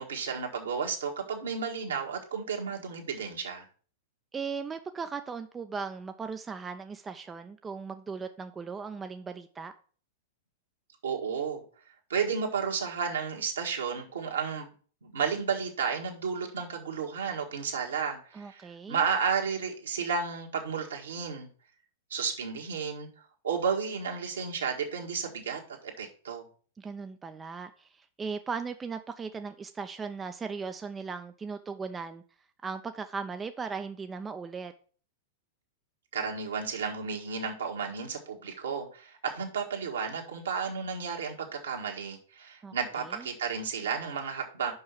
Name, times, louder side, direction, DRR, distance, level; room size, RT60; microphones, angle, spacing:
voice 1, 0.0-3.7 11.0-11.6 12.1-14.7 15.0-21.5 22.1-23.1 23.4-26.4 36.1-44.7, right 6 dB, 70° right, 1.7 m, -32 dB
voice 2, 4.3-9.7 18.3-19.1 26.8-32.2 32.6-34.7 42.6-43.3, right 5 dB, 15° right, 0.5 m, -38 dB
5.6 x 5.4 x 5.7 m
figure-of-eight pair, 100°, 0 cm